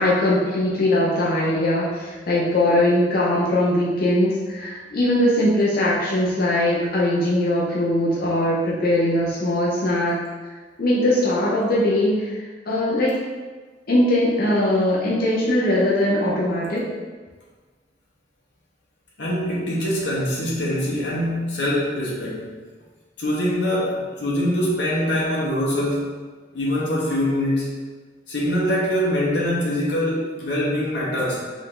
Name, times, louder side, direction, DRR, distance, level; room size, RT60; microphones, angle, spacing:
voice 1, 0.0-10.2 10.8-13.2 13.9-16.8, left 1 dB, 60° left, -7 dB, 0.8 m, -20 dB
voice 2, 19.2-22.5 23.2-26.1 26.5-27.7 28.3-31.4, equal, 80° left, -6 dB, 1.0 m, -23 dB
5.0 x 2.6 x 3.8 m, 1.4 s
head